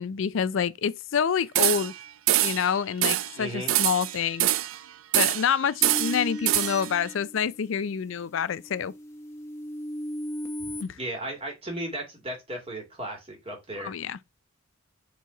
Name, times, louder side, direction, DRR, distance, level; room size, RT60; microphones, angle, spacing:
voice 1, 0.0-1.9 2.4-4.5 5.2-8.9 10.8-11.0 13.8-14.2, left 7 dB, 65° left, 0.4 m, -27 dB
sound 1, 1.6-2.0 2.3-2.7 3.0-3.3 3.7-4.8 5.1-5.5 5.8-6.9, right 14 dB, 80° right, 0.4 m, -24 dB
voice 2, 3.3-3.7 11.0-13.9, right 1 dB, 30° right, 2.4 m, -35 dB
sound 2, 5.8-7.8 8.3-10.8, equal, 15° left, 1.1 m, -37 dB
4.7 x 4.1 x 5.7 m
head